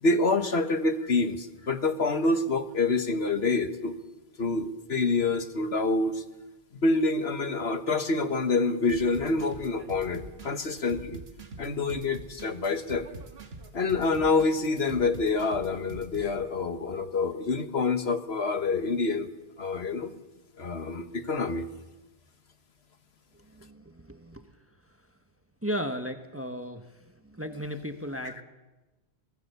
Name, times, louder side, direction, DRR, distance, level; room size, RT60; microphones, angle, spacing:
voice 1, 0.0-3.9 4.4-6.2 6.7-11.2 11.6-13.1 13.7-19.3 19.6-20.1 20.6-21.7, left 3 dB, 75° left, 9 dB, 1.7 m, -27 dB
sound 1, 8.9-16.4, right 3 dB, 75° right, 1.7 m, -45 dB
voice 2, 23.3-24.6 24.9-25.1 25.6-28.4, equal, 15° right, 6 dB, 1.3 m, -36 dB
24.0 x 20.0 x 6.9 m, 1.1 s
omnidirectional pair, 1.1 m